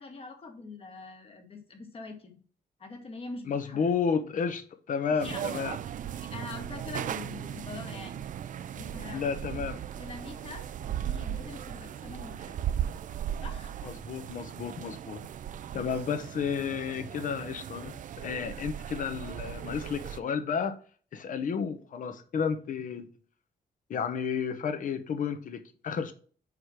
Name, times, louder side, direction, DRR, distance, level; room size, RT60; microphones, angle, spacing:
voice 1, 0.0-2.4 2.8-3.9 5.2-5.4 6.1-8.2 8.7-9.3 10.0-12.6 13.4-13.7 15.7-16.0, left 3 dB, 35° left, 1.5 m, -44 dB
voice 2, 3.5-5.8 9.1-9.8 13.8-15.2 15.7-20.8 21.1-23.1 23.9-26.1, left 6 dB, 55° left, 0.8 m, -32 dB
sound 1, 5.2-20.2, right 10 dB, 50° right, 0.4 m, -37 dB
4.9 x 4.9 x 5.9 m
wide cardioid pair, 155°, 17 cm